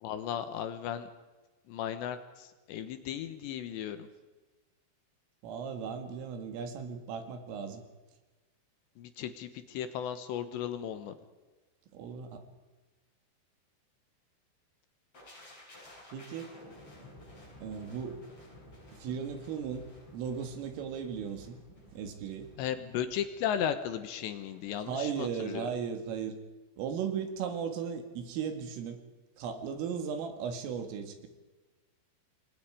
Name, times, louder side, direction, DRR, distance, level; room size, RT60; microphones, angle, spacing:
voice 1, 0.0-1.1 1.7-4.1 9.0-11.1 22.6-25.7, left 9 dB, 75° left, 10 dB, 3.0 m, -35 dB
voice 2, 5.4-7.8 11.9-12.4 16.1-16.5 17.6-18.2 19.0-21.6 21.9-22.5 24.9-26.4 26.8-29.0 29.4-31.3, right 7 dB, 90° right, 6 dB, 4.8 m, -36 dB
sound 1, 15.1-25.0 25.3-25.5, left 1 dB, 30° left, 8.9 m, -54 dB
28.5 x 22.0 x 4.9 m, 1.2 s
omnidirectional pair, 5.7 m